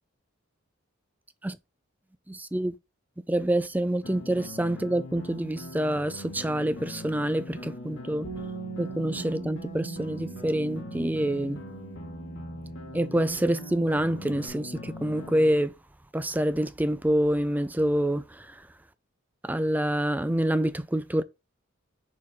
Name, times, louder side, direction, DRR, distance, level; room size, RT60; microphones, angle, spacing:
voice 1, 2.3-2.8 3.3-8.3 8.8-11.6 12.9-15.7 16.1-18.7 19.4-21.2, right 1 dB, 10° right, 0.4 m, -27 dB
sound 1, 4.0-15.5, left 1 dB, 65° left, 1.6 m, -41 dB
Bass guitar, 8.2-14.5, right 7 dB, 50° left, 3.6 m, -43 dB
6.4 x 4.1 x 3.6 m
head